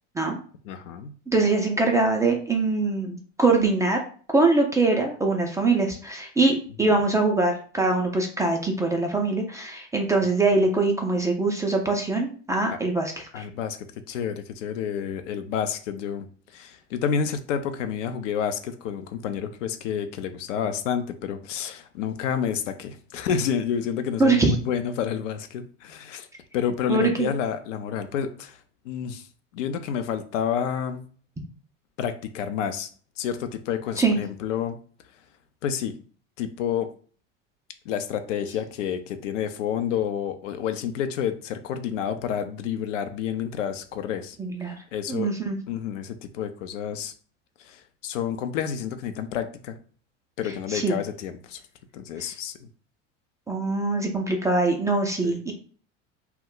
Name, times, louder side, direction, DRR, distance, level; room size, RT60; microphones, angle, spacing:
voice 1, 0.6-1.1 6.8-7.0 13.3-13.8 14.1-16.3 16.5-26.3 26.5-28.6 28.8-29.3 29.5-31.0 32.0-32.9 33.2-34.8 35.6-35.9 36.4-36.9 37.9-44.4 44.9-45.3 45.7-47.1 47.6-49.8 50.4-51.6 51.9-52.7 55.2-55.4, left 8 dB, 75° left, 9 dB, 0.5 m, -29 dB
voice 2, 1.3-4.0 4.3-13.4 24.2-24.5 26.9-27.3 34.0-34.2 44.4-44.7 45.1-45.6 50.7-51.0 53.5-55.5, right 3 dB, 10° right, 2 dB, 0.3 m, -23 dB
2.2 x 2.0 x 3.7 m, 0.43 s
hypercardioid pair, 85°, 37 cm